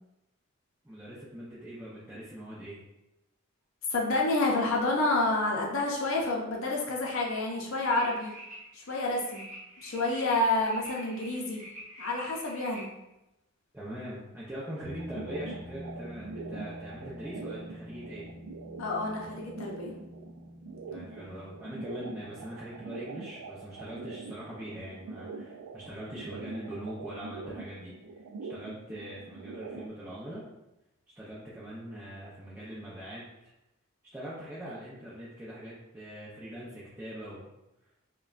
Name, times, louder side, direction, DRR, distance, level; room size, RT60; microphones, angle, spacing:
voice 1, 0.8-2.8 13.7-18.3 20.9-27.9 28.5-30.4 31.2-33.2 34.1-37.5, equal, 10° right, -9 dB, 0.5 m, -42 dB
voice 2, 3.9-8.3 8.7-9.5 9.8-11.6 12.0-12.9 18.8-19.9, left 2 dB, 65° left, -1 dB, 0.6 m, -29 dB
sound 1, 7.8-12.9, equal, 40° right, 0.9 m, -47 dB
sound 2, 14.8-25.5, left 1 dB, 35° left, 1.2 m, -47 dB
sound 3, 15.0-29.9, right 4 dB, 85° right, 0.3 m, -44 dB
4.9 x 2.2 x 2.4 m, 0.93 s
head